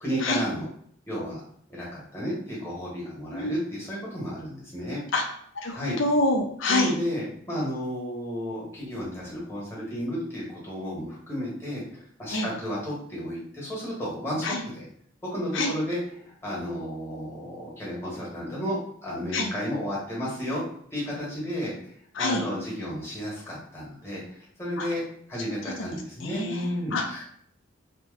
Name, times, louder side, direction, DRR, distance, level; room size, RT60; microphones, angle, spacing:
voice 1, 0.0-0.7 1.1-1.4 1.7-5.0 5.7-6.0 6.7-14.9 15.2-20.6 20.9-27.2, equal, 10° left, -6 dB, 1.2 m, -32 dB
voice 2, 5.5-6.9 12.3-12.5 14.4-14.6 15.5-15.7 19.3-19.5 22.1-22.4 24.8-24.9 25.9-26.0 26.2-27.2, left 2 dB, 70° left, 2 dB, 0.5 m, -26 dB
2.9 x 2.1 x 3.5 m, 0.63 s
head